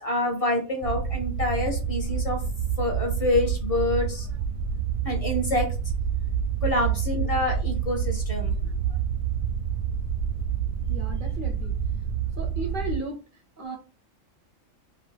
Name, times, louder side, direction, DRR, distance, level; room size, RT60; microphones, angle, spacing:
voice 1, 0.0-2.4 2.8-4.3 5.0-5.7 6.6-8.6, left 1 dB, 35° left, 1 dB, 0.6 m, -27 dB
sound 1, 0.8-13.0, right 7 dB, 80° right, 1.0 m, -28 dB
voice 2, 10.9-11.7 12.4-13.2 13.6-13.8, right 2 dB, 60° right, 2 dB, 0.6 m, -35 dB
2.7 x 2.5 x 3.3 m, 0.34 s
omnidirectional pair, 1.4 m